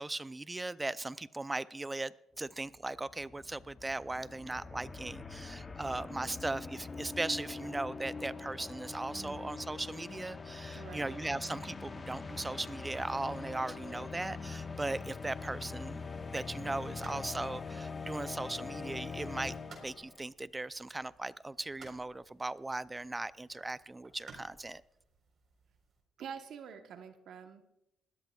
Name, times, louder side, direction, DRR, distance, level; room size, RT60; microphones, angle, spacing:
voice 1, 0.0-16.0 16.3-19.5 19.8-24.8, right 2 dB, 15° right, 17 dB, 0.4 m, -38 dB
sound 1, 2.8-20.2, left 4 dB, 30° left, 0.8 m, -43 dB
voice 2, 9.1-9.5 10.8-11.2 26.2-27.6, right 7 dB, 70° right, 7 dB, 1.0 m, -47 dB
sound 2, 16.1-26.0, right 4 dB, 50° right, 4.0 m, -59 dB
20.5 x 14.5 x 2.4 m, 0.88 s
cardioid pair, 90°, 0 cm